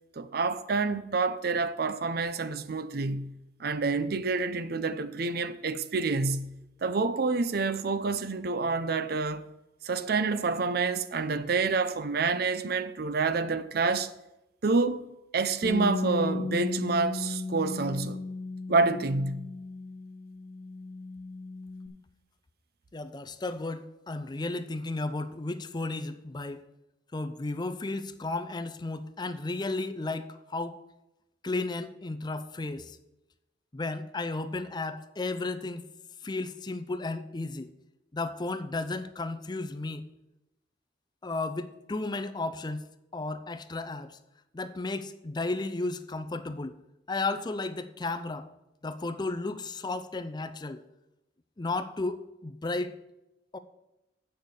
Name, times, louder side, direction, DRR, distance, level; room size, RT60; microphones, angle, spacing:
voice 1, 0.2-6.5 6.8-9.5 9.8-14.1 14.6-18.2 18.7-19.5, right 4 dB, 55° right, 0.6 m, -28 dB
Bass guitar, 15.6-21.9, left 3 dB, 55° left, 1.6 m, -35 dB
voice 2, 22.9-26.6 27.1-30.8 31.4-33.0 33.7-35.8 36.2-37.7 38.1-40.0 41.2-42.8 43.1-44.2 44.5-46.8 47.1-48.5 48.8-50.8 51.6-52.9 53.5-53.6, left 2 dB, 25° left, 0.5 m, -33 dB
8.0 x 6.7 x 6.8 m
head